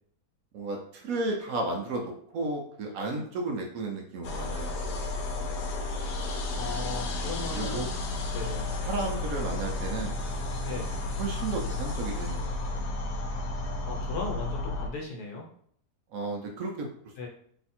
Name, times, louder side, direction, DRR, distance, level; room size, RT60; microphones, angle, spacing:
voice 1, 0.5-4.9 7.5-7.9 8.8-10.1 11.2-12.8 16.1-16.9, right 2 dB, 65° right, 1 dB, 1.0 m, -33 dB
sound 1, 4.2-14.9, left 2 dB, 90° left, 1.3 m, -32 dB
voice 2, 6.5-7.9 8.3-8.6 10.6-10.9 13.9-15.5 17.2-17.3, left 4 dB, 75° left, -1 dB, 1.4 m, -37 dB
3.3 x 2.4 x 4.2 m, 0.63 s
omnidirectional pair, 1.7 m